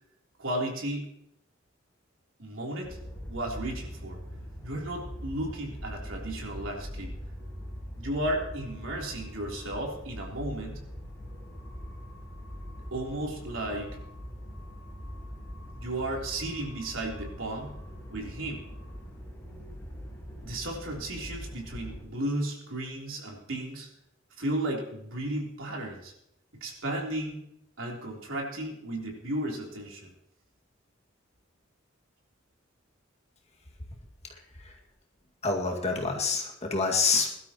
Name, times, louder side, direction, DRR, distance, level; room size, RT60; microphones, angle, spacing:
voice 1, 0.4-1.1 2.4-3.0 3.3-4.2 4.6-7.1 7.9-10.8 12.9-14.0 15.8-17.7 18.1-18.6 20.4-23.9 24.4-26.1 26.6-27.4 27.8-30.1, right 1 dB, 80° right, -1 dB, 3.5 m, -34 dB
sound 1, 2.8-22.0, equal, 15° left, 4.6 m, -42 dB
voice 2, 35.4-37.3, left 4 dB, 35° left, 1 dB, 2.1 m, -26 dB
21.5 x 12.5 x 3.0 m, 0.77 s
head